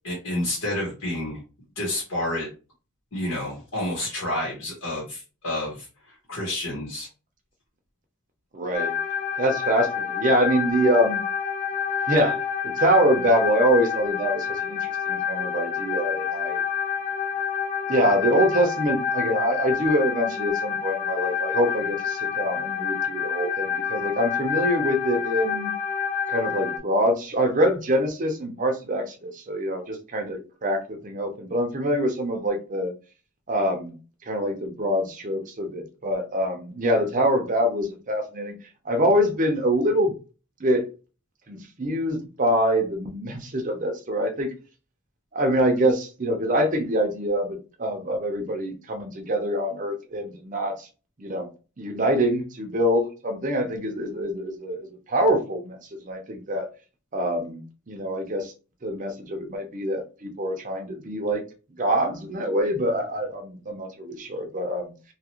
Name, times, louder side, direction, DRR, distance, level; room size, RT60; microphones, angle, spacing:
voice 1, 0.0-1.4 1.8-2.5 3.1-7.1, left 1 dB, 75° left, 1.2 m, -29 dB
voice 2, 8.5-8.9 9.4-11.3 12.0-16.6 17.9-25.8 26.3-32.9 33.5-34.0 34.2-38.5 38.8-40.1 40.6-40.9 41.5-44.5 45.3-50.9 51.2-51.5 51.8-56.7 57.1-58.5 58.8-61.5 61.8-64.9, equal, 35° right, 0.6 m, -25 dB
sound 1, 8.7-26.8, left 7 dB, 40° left, 0.3 m, -28 dB
2.8 x 2.4 x 2.9 m
head